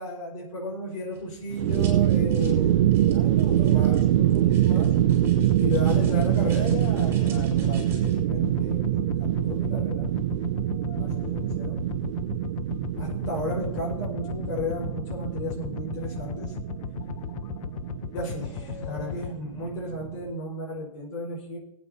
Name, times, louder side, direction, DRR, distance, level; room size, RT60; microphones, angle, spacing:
voice 1, 0.0-4.9 5.6-10.1 11.0-11.9 13.0-16.5 18.1-21.6, left 1 dB, 60° left, -3 dB, 5.5 m, -34 dB
sound 1, 1.1-8.2, right 5 dB, 15° right, 3.9 m, -49 dB
sound 2, 1.5-20.3, right 12 dB, 60° right, 0.7 m, -25 dB
sound 3, 4.7-19.3, left 10 dB, 85° left, 0.4 m, -37 dB
22.0 x 8.6 x 2.9 m, 0.78 s
hypercardioid pair, 155°, 17 cm